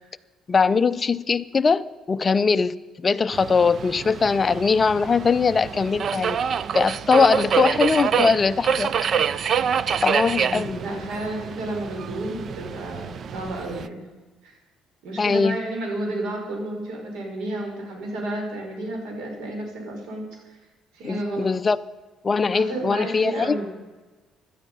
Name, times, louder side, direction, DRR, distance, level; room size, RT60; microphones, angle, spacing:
voice 1, 0.5-6.4 6.7-8.9 10.0-10.8 15.2-15.6 21.0-21.8 22.2-23.6, left 5 dB, 25° left, 12 dB, 0.5 m, -21 dB
Subway metro underground, 3.3-13.9, right 7 dB, 45° right, 0.4 m, -27 dB
voice 2, 10.3-14.0 14.4-14.5 15.0-20.6 20.9-21.5 22.5-23.7, right 1 dB, 90° right, 1 dB, 5.2 m, -31 dB
16.5 x 12.5 x 5.5 m, 1.3 s
cardioid pair, 135°, 0 cm